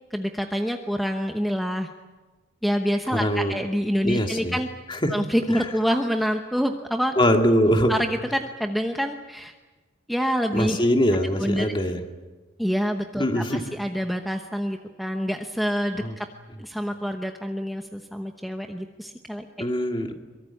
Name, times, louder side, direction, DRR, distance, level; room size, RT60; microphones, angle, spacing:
voice 1, 0.1-1.9 2.6-4.7 5.1-7.1 7.9-9.5 10.1-10.8 11.4-11.7 12.6-16.3 16.6-19.7, equal, ahead, 4 dB, 1.0 m, -26 dB
voice 2, 3.1-3.6 4.0-4.6 4.9-5.2 5.5-5.7 7.2-8.0 10.5-12.0 13.2-13.7 16.0-16.2 19.6-20.1, equal, 25° left, 4 dB, 2.2 m, -22 dB
24.5 x 23.0 x 8.6 m, 1.3 s
head